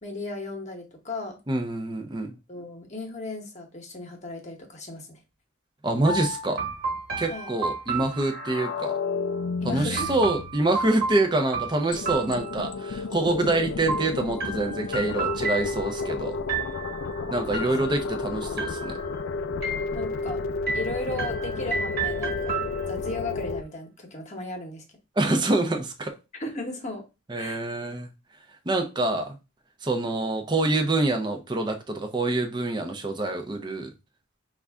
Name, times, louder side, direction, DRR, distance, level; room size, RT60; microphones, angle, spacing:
voice 1, 0.0-1.4 2.5-5.2 7.3-7.5 9.6-10.1 19.9-20.4 20.7-22.5 22.9-24.8 26.4-27.0 27.3-27.6, left 2 dB, 35° left, 2 dB, 1.0 m, -35 dB
voice 2, 1.5-2.3 5.8-6.6 7.2-9.0 9.6-16.4 17.3-18.9 25.2-26.2 27.3-28.1 28.7-29.4 29.8-33.9, right 2 dB, 20° right, 4 dB, 0.6 m, -26 dB
sound 1, 6.1-8.8 10.0-13.0 13.9-16.1 16.5-17.1 17.5-18.2 18.6-19.2 19.6-20.3 20.7-23.1, right 3 dB, 45° right, 1.4 m, -32 dB
sound 2, 8.2-10.9 11.9-23.6, left 4 dB, 65° left, 0.4 m, -32 dB
5.3 x 2.5 x 3.4 m, 0.26 s
head